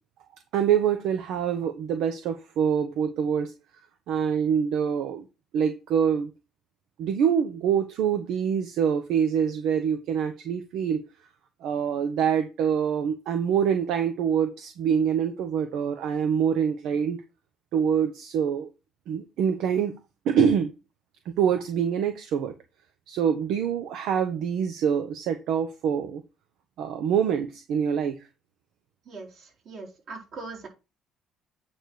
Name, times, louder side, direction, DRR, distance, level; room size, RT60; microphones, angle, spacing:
voice 1, 0.5-3.5 4.1-5.2 5.5-6.3 7.0-11.0 11.6-17.2 17.7-18.7 19.1-19.9 20.2-20.7 21.2-22.5 23.1-26.2 26.8-28.2, right 8 dB, 80° right, 0.9 m, -25 dB
voice 2, 29.0-30.7, right 3 dB, 60° right, 4.3 m, -41 dB
9.0 x 3.5 x 6.2 m
cardioid pair, 90°, 0 cm